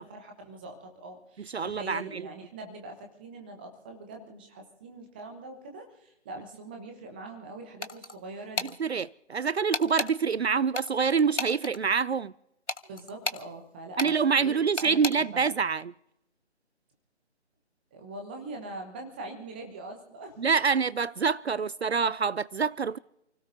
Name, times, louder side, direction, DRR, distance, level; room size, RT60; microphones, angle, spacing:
voice 1, 0.0-8.7 12.8-15.4 17.9-20.4, right 2 dB, 10° right, 1.1 m, -43 dB
voice 2, 1.4-2.3 8.6-12.3 14.0-15.9 20.4-23.0, right 5 dB, 65° right, 0.5 m, -26 dB
sound 1, 7.8-8.2 8.6-8.7 9.7-10.1 10.7-11.8 12.7-13.4 14.0-14.1 14.8-15.2, left 3 dB, 85° left, 1.4 m, -32 dB
29.0 x 17.0 x 2.7 m
figure-of-eight pair, 155°, 35 cm